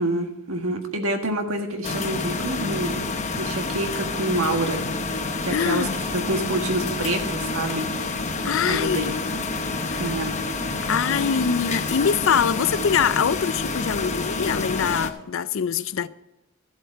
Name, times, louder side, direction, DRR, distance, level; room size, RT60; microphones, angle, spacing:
voice 1, 0.0-3.0 3.4-4.8 5.4-7.9 8.7-9.2 10.0-10.5, right 1 dB, 85° right, 1.6 m, -27 dB
sound 1, 1.8-15.1, left 3 dB, 35° left, 0.8 m, -28 dB
voice 2, 5.5-5.9 8.4-9.1 9.9-10.1 10.9-16.1, left 7 dB, 65° left, 0.5 m, -23 dB
14.0 x 8.0 x 4.6 m
head